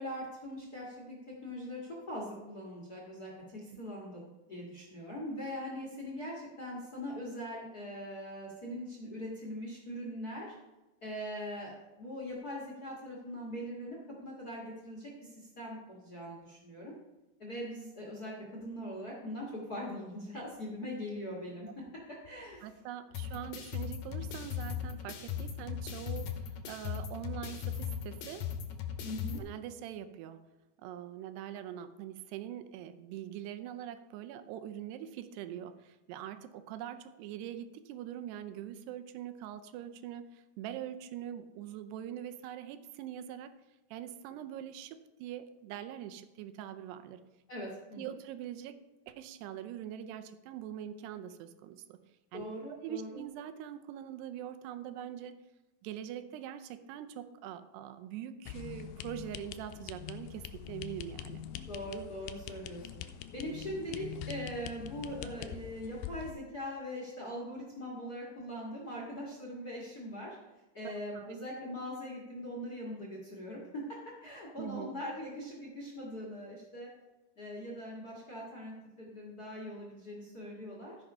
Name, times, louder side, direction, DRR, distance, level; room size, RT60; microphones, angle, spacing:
voice 1, 0.0-4.2 4.5-10.5 11.0-16.9 17.4-21.7 22.1-22.7 29.0-29.4 47.5-48.0 52.3-53.2 61.7-62.9 63.3-70.4 70.7-76.9 77.4-81.0, equal, 50° left, -2 dB, 1.1 m, -41 dB
voice 2, 3.7-4.0 22.6-28.5 29.4-30.4 30.8-43.5 43.9-47.2 48.0-48.8 49.1-52.0 52.3-55.3 55.8-61.4 70.8-71.4 74.6-74.9, right 10 dB, 85° right, 10 dB, 2.8 m, -43 dB
sound 1, 23.1-29.4, left 9 dB, 70° left, 1.8 m, -38 dB
sound 2, 58.5-66.3, left 10 dB, 85° left, 2.1 m, -44 dB
14.0 x 5.9 x 5.5 m, 1.1 s
omnidirectional pair, 4.7 m